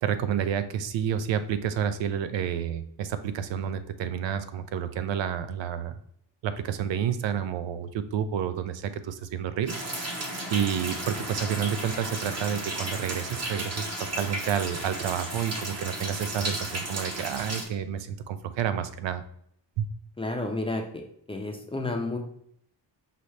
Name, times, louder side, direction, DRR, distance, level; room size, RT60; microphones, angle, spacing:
voice 1, 0.0-6.0 6.4-19.2 19.8-19.9, right 8 dB, 80° right, 11 dB, 0.6 m, -30 dB
sound 1, 9.7-17.6, right 1 dB, 35° right, 0.9 m, -34 dB
voice 2, 20.2-20.8 21.3-22.2, left 2 dB, 15° left, 2 dB, 0.4 m, -30 dB
5.6 x 2.7 x 3.1 m, 0.68 s
wide cardioid pair, 160°, 44 cm